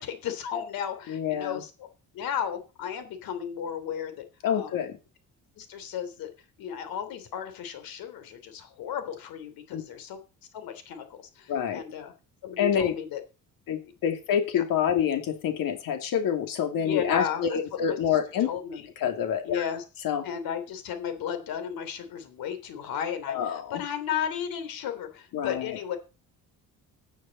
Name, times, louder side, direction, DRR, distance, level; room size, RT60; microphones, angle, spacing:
voice 1, 0.0-1.9 2.1-4.2 4.5-4.8 5.6-6.3 6.6-10.2 10.5-12.1 12.4-13.2 14.5-14.6 16.7-17.4 17.8-18.2 18.4-18.9 19.4-19.8 20.2-26.0, left 8 dB, 90° left, 9 dB, 3.4 m, -34 dB
voice 2, 1.1-1.6 4.4-5.0 9.7-9.8 11.5-11.8 12.6-13.0 13.7-18.5 19.0-19.6 20.0-20.2 23.3-23.8 25.3-25.8, left 8 dB, 75° left, 6 dB, 2.7 m, -27 dB
15.5 x 9.4 x 4.2 m, 0.31 s
cardioid pair, 130°, 34 cm